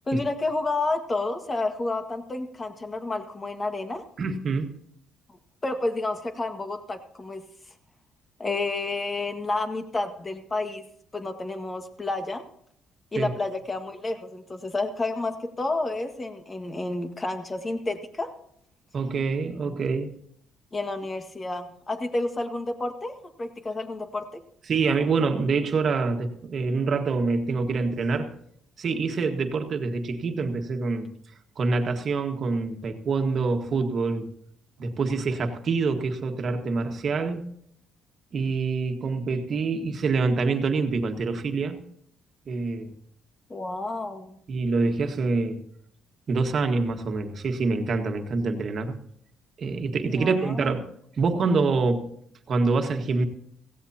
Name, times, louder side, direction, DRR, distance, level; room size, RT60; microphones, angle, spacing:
voice 1, 0.1-4.1 5.6-7.4 8.4-10.8 11.1-12.4 13.1-18.3 20.7-24.4 43.5-44.4 50.1-50.7, left 2 dB, 25° left, 7 dB, 1.7 m, -30 dB
voice 2, 4.2-4.7 13.1-13.3 18.9-20.1 24.7-28.3 28.8-31.1 31.6-34.3 34.8-37.5 38.3-41.8 42.5-42.9 44.5-45.6 46.3-49.0 49.6-50.9 51.2-52.1 52.5-53.3, right 4 dB, 50° right, 5 dB, 1.6 m, -26 dB
16.5 x 16.0 x 2.9 m, 0.68 s
cardioid pair, 90°, 0 cm